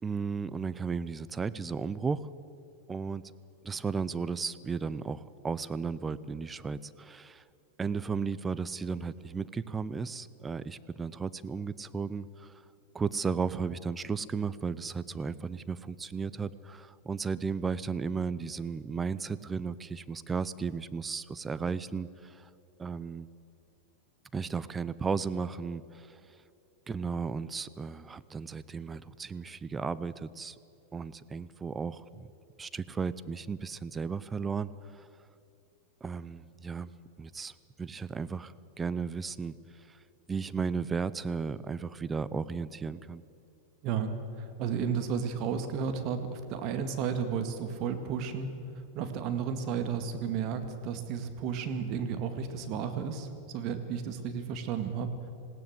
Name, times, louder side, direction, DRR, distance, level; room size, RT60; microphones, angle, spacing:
voice 1, 0.0-2.3 2.9-3.2 3.6-7.4 7.8-12.5 12.9-22.5 22.8-23.3 24.3-26.2 26.9-30.6 30.9-32.3 32.6-35.1 36.0-36.9 37.2-37.5 37.8-39.6 39.9-40.0 40.3-43.2, right 5 dB, 20° right, 16 dB, 0.7 m, -34 dB
voice 2, 44.4-48.5 48.9-55.1, right 7 dB, 45° right, 8 dB, 2.0 m, -33 dB
20.0 x 16.5 x 8.0 m, 2.6 s
hypercardioid pair, 100°, 0 cm